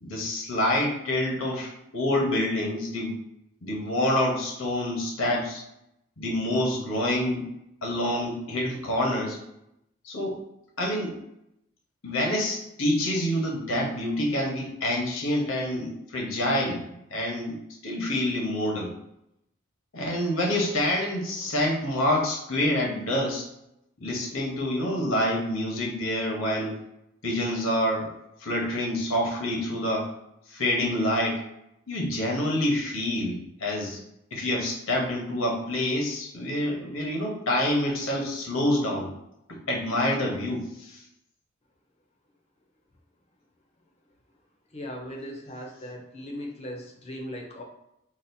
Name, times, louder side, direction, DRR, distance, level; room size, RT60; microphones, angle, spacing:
voice 1, 0.0-3.2 3.6-5.6 6.2-7.5 7.8-9.4 10.0-10.4 10.8-11.2 12.0-17.6 17.8-18.9 19.9-23.5 24.0-26.8 27.2-28.1 28.4-30.1 30.5-31.4 31.9-34.0 34.3-39.1 39.5-41.0, left 1 dB, 70° left, -1 dB, 1.0 m, -27 dB
voice 2, 44.7-47.6, equal, 30° left, 1 dB, 0.6 m, -38 dB
4.0 x 2.4 x 2.7 m, 0.82 s
head